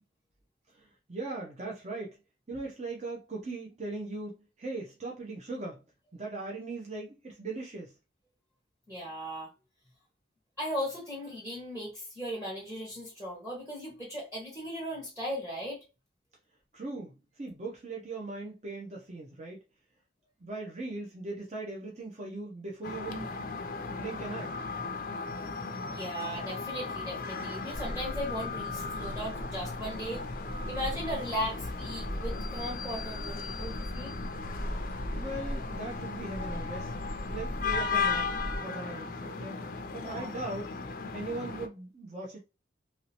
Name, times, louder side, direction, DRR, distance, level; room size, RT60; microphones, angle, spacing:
voice 1, 0.7-2.2 2.5-5.8 6.1-7.9 16.7-19.6 20.4-23.3 23.8-24.6 35.2-37.0 37.3-38.3 38.6-39.6 39.9-40.7 41.1-42.4, right 2 dB, 35° right, 0.6 m, -39 dB
voice 2, 8.9-9.5 10.6-15.8 25.9-30.2 30.7-34.2 40.0-40.3, equal, 15° right, 1.1 m, -37 dB
sound 1, 22.8-41.7, left 4 dB, 50° left, 0.4 m, -36 dB
sound 2, 27.7-38.6, equal, 75° right, 1.6 m, -40 dB
3.0 x 2.8 x 2.8 m
head